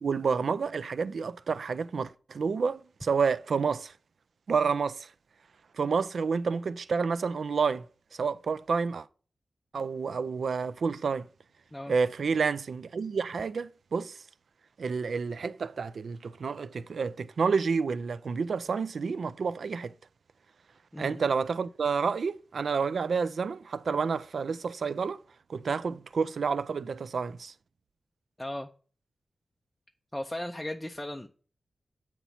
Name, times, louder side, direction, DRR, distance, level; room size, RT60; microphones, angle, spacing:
voice 1, 0.0-3.9 4.5-5.1 5.7-7.9 8.1-9.1 9.7-11.3 11.9-14.2 14.8-19.9 21.0-25.2 25.5-27.5, right 5 dB, 70° right, 0.3 m, -29 dB
voice 2, 20.9-21.2 28.4-28.7 30.1-31.3, left 1 dB, 10° left, 0.4 m, -36 dB
8.0 x 3.0 x 5.6 m
wide cardioid pair, 120°, 0 cm